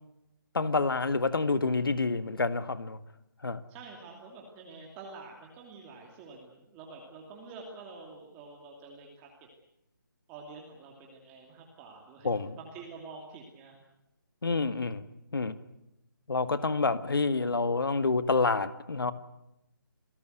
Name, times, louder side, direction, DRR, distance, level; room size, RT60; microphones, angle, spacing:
voice 1, 0.5-3.0 3.4-3.6 12.2-12.6 14.4-15.0 15.3-15.5 16.3-19.1, left 3 dB, 75° left, 12 dB, 1.9 m, -28 dB
voice 2, 3.7-9.5 10.3-12.3 12.6-13.8, right 4 dB, 15° right, 0 dB, 2.7 m, -47 dB
28.0 x 18.0 x 8.0 m, 0.87 s
figure-of-eight pair, 160°, 12 cm